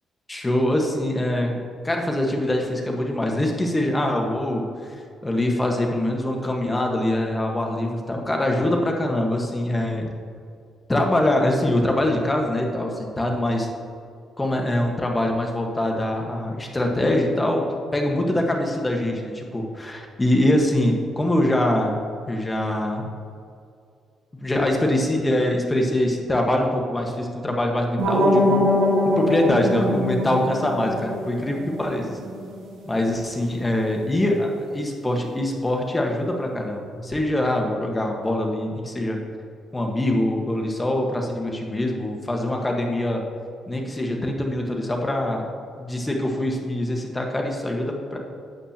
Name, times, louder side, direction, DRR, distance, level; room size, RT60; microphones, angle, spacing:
voice 1, 0.3-4.7 5.2-10.1 10.9-13.7 14.4-17.7 17.9-22.0 22.3-23.1 24.4-28.6 29.2-32.2 32.8-39.2 39.7-43.2 43.7-45.5 45.8-48.2, left 1 dB, 15° left, 1 dB, 1.4 m, -23 dB
sound 1, 28.0-32.9, left 1 dB, 85° right, 2.3 m, -23 dB
12.0 x 8.2 x 2.9 m, 2.3 s
cardioid pair, 90°, 0 cm